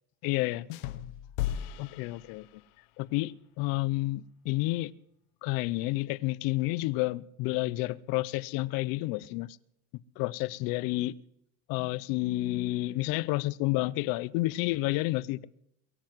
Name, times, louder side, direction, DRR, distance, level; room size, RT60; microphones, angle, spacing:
voice 1, 0.2-0.7 1.8-2.5 3.0-4.9 5.4-9.6 10.2-11.2 11.7-15.5, left 19 dB, 55° left, 0.7 m, -30 dB
sound 1, 0.7-2.9, left 12 dB, 85° left, 1.2 m, -36 dB
22.0 x 7.9 x 7.5 m
cardioid pair, 155°, 43 cm